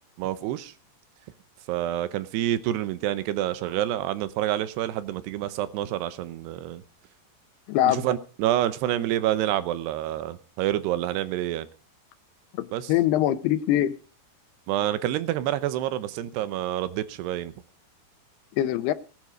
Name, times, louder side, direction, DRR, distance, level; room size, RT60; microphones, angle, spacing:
voice 1, 0.2-0.7 1.7-6.8 7.8-11.7 12.7-12.9 14.7-17.5, right 13 dB, 80° right, 2.9 m, -28 dB
voice 2, 7.7-8.1 12.5-14.0 18.6-18.9, left 13 dB, 80° left, 2.7 m, -23 dB
19.0 x 9.6 x 5.0 m
omnidirectional pair, 4.8 m